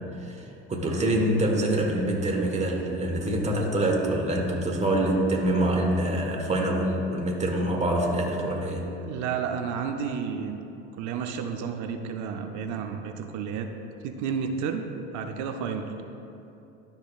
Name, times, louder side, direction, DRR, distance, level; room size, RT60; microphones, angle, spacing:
voice 1, 0.7-8.8, right 1 dB, 20° right, 0 dB, 1.4 m, -25 dB
voice 2, 8.9-10.6 11.0-13.7 14.0-15.9, right 6 dB, 55° right, 6 dB, 0.7 m, -31 dB
12.0 x 5.2 x 2.4 m, 2.9 s
hypercardioid pair, 70°, 34 cm